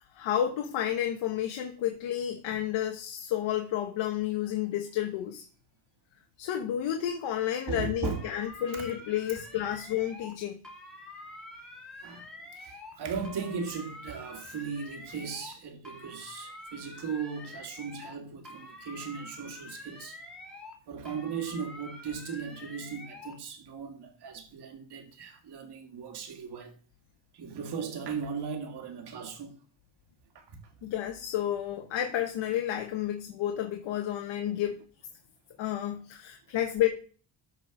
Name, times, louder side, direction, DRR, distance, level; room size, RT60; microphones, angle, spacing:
voice 1, 0.1-5.4 6.4-10.6 30.8-34.8 35.6-36.9, left 11 dB, 75° left, 1.3 m, -31 dB
voice 2, 7.7-8.3 8.7-8.9 12.0-12.3 12.6-20.2 20.9-26.7 27.3-29.6 30.3-30.6, right 6 dB, 60° right, 2.2 m, -37 dB
sound 1, 8.0-10.4 10.6-13.0 13.2-15.6 15.8-18.2 18.4-20.8 21.1-23.4, left 2 dB, ahead, 2.6 m, -47 dB
13.0 x 4.6 x 5.1 m
cardioid pair, 120°, 46 cm